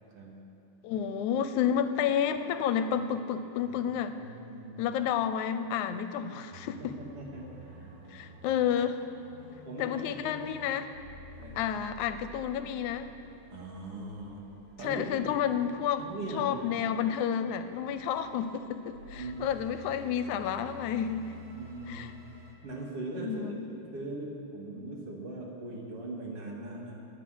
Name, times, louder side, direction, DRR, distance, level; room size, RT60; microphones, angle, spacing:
voice 1, 0.8-4.2 4.8-6.9 8.1-9.0 9.8-10.9 11.6-13.1 14.8-16.1 16.3-21.3 21.9-22.1 23.2-23.6, left 8 dB, 85° left, 10 dB, 2.0 m, -30 dB
voice 2, 4.2-5.0 6.8-8.0 9.6-10.0 10.2-10.4 11.4-11.7 13.5-14.5 14.8-15.1 16.0-16.9 19.1-19.5 21.5-22.0 22.6-27.1, right 2 dB, 50° right, -2 dB, 2.8 m, -40 dB
sound 1, 6.5-22.5, right 1 dB, 80° right, 2.9 m, -51 dB
22.0 x 8.4 x 6.3 m, 2.8 s
omnidirectional pair, 3.5 m